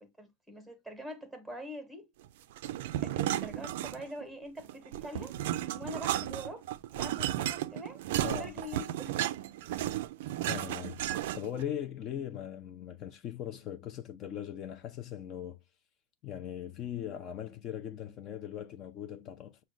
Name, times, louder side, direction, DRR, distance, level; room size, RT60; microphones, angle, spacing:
voice 1, 0.0-2.1 3.0-5.4 5.7-6.7 6.9-9.2, equal, ahead, 0.9 m, -44 dB
sound 1, 2.6-4.3 4.6-11.6, right 13 dB, 60° right, 0.3 m, -34 dB
voice 2, 8.2-8.5 10.5-11.0 11.3-15.6 16.2-19.6, left 10 dB, 25° left, 0.4 m, -39 dB
6.0 x 2.2 x 3.8 m
supercardioid pair, 170°, 0 cm